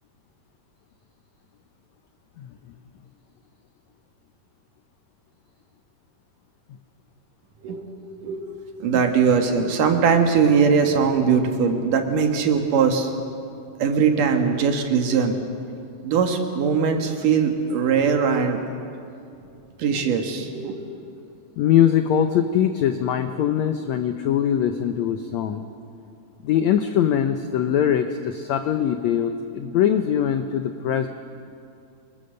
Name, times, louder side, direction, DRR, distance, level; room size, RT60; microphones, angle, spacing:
voice 1, 8.8-13.1 13.8-15.4 16.0-18.6 19.8-20.8, right 6 dB, 65° right, 5 dB, 3.0 m, -20 dB
voice 2, 21.6-25.6 26.4-31.1, left 9 dB, 85° left, 7 dB, 1.5 m, -22 dB
25.5 x 21.0 x 6.6 m, 2.5 s
omnidirectional pair, 4.3 m